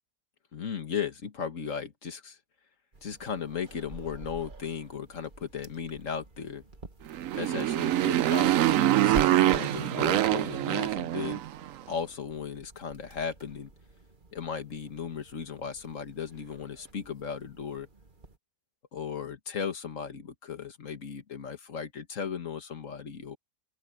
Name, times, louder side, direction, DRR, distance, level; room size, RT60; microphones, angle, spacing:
voice 1, 0.5-2.4 3.0-6.6 7.3-11.4 11.9-13.7 14.3-17.9 18.9-23.4, left 7 dB, 55° left, 2.0 m, -36 dB
sound 1, 2.9-18.4, right 2 dB, 30° right, 1.8 m, -47 dB
Motorcycle, 7.1-11.7, right 13 dB, 65° right, 0.9 m, -25 dB
open air
omnidirectional pair, 1.6 m